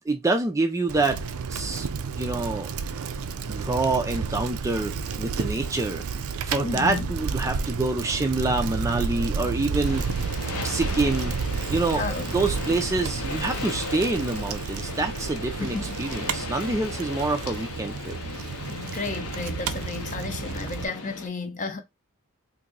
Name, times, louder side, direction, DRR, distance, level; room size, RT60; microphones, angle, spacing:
voice 1, 0.1-1.2 1.5-1.9 2.2-2.7 3.5-4.9 5.2-10.0 10.6-11.3 11.7-12.0 12.3-18.2, right 2 dB, 15° right, 0.3 m, -26 dB
Bicycle, 0.9-20.8, right 5 dB, 80° right, 0.4 m, -31 dB
voice 2, 6.6-7.1 11.9-12.3 15.6-16.0 16.7-16.8 18.7-21.8, left 3 dB, 35° left, 0.6 m, -33 dB
sound 1, 9.8-21.3, left 4 dB, 85° left, 0.8 m, -36 dB
2.9 x 2.6 x 3.8 m
head